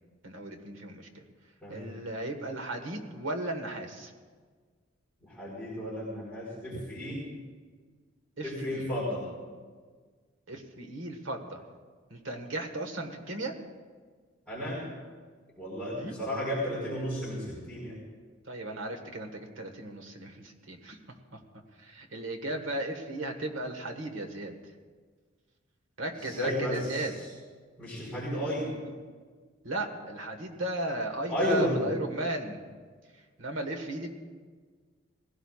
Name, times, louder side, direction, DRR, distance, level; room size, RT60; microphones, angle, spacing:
voice 1, 0.2-1.2 1.7-4.1 8.4-8.9 10.5-11.6 12.1-13.5 16.0-16.1 17.5-17.6 18.5-21.0 21.8-24.5 26.0-27.1 29.6-32.6 33.4-34.1, right 2 dB, 85° right, 3 dB, 1.6 m, -35 dB
voice 2, 5.2-7.2 8.4-9.3 14.5-14.8 15.6-18.0 26.2-27.3 27.8-28.7 31.3-31.9, equal, ahead, -11 dB, 4.7 m, -33 dB
20.5 x 16.5 x 2.4 m, 1.5 s
head